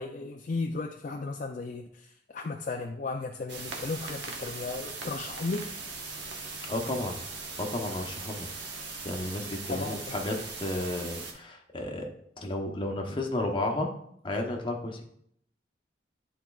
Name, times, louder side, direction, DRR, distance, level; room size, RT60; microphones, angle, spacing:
voice 1, 0.0-5.7 9.7-10.2, left 3 dB, 45° left, 2 dB, 0.4 m, -35 dB
sound 1, 3.5-11.3, right 4 dB, 80° right, 1.1 m, -39 dB
voice 2, 6.7-7.2 7.6-8.5 9.0-12.1 12.4-13.9 14.2-15.0, left 1 dB, 30° left, 2 dB, 0.9 m, -32 dB
10.5 x 4.4 x 2.4 m, 0.68 s
head